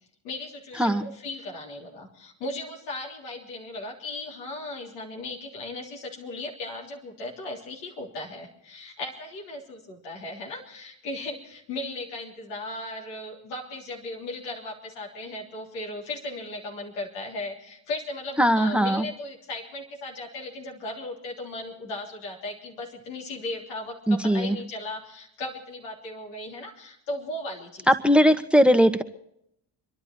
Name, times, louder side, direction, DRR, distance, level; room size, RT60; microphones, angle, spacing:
voice 1, 0.2-27.9, left 2 dB, 90° left, -1 dB, 3.6 m, -37 dB
voice 2, 18.4-19.0 24.1-24.6 27.9-29.0, equal, ahead, 10 dB, 1.2 m, -19 dB
27.5 x 11.0 x 4.4 m, 0.77 s
supercardioid pair, 60°, 46 cm